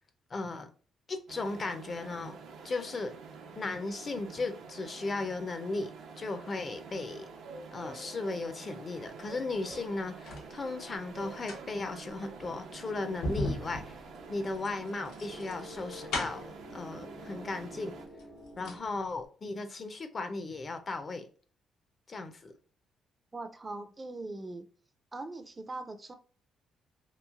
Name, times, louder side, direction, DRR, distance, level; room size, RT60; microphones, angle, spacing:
voice 1, 0.3-0.7 1.1-2.4 2.6-3.1 3.6-7.3 7.7-14.0 14.3-18.0 18.6-21.3 22.1-22.5, left 3 dB, 40° left, 0.5 m, -36 dB
sound 1, 1.3-18.1, right 4 dB, 80° right, 0.6 m, -48 dB
sound 2, 9.5-10.5 11.2-16.6 17.6-17.7 18.1-18.9 19.2-19.3, left 1 dB, 90° left, 0.8 m, -38 dB
sound 3, 12.4-18.8, left 1 dB, 65° right, 1.0 m, -50 dB
voice 2, 23.3-24.7 25.1-26.2, right 2 dB, 25° right, 0.4 m, -41 dB
3.0 x 2.4 x 2.3 m
cardioid pair, 90°, 0 cm